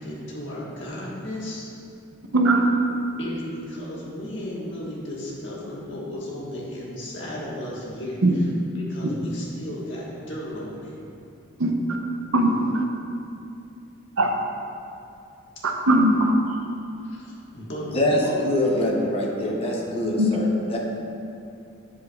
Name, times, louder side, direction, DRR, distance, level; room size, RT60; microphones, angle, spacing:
voice 1, 0.0-1.7 3.2-8.5 8.7-10.9 16.5-16.6 17.0-18.4, left 1 dB, 60° left, -5 dB, 1.5 m, -34 dB
voice 2, 2.3-2.7 8.2-8.3 11.6-11.7 12.3-12.8 14.2-14.3 15.6-16.3 20.2-20.3, right 1 dB, 85° right, 3 dB, 0.7 m, -19 dB
voice 3, 17.9-20.8, left 1 dB, 30° left, -2 dB, 0.8 m, -24 dB
7.9 x 7.6 x 2.4 m, 2.6 s
head